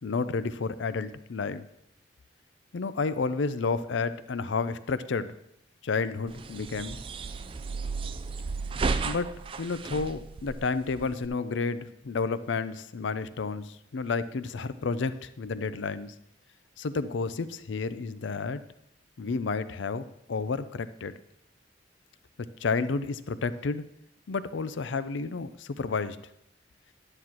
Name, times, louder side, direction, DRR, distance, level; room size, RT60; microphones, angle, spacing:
voice 1, 0.0-1.6 2.7-5.3 5.8-7.0 9.0-9.3 9.6-16.1 16.8-18.6 19.2-21.1 22.6-23.8 24.3-26.2, left 4 dB, 80° left, 13 dB, 0.5 m, -31 dB
sound 1, 6.3-11.3, right 4 dB, 30° right, 0.3 m, -33 dB
11.0 x 9.7 x 2.9 m, 0.78 s
head